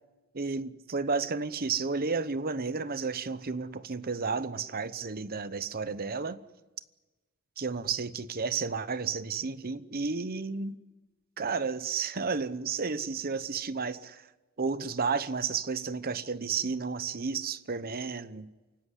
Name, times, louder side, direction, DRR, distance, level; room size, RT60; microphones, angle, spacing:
voice 1, 0.3-6.4 7.6-10.8 11.4-14.2 14.6-18.5, right 5 dB, 45° right, 0.9 m, -32 dB
28.5 x 16.5 x 9.8 m
head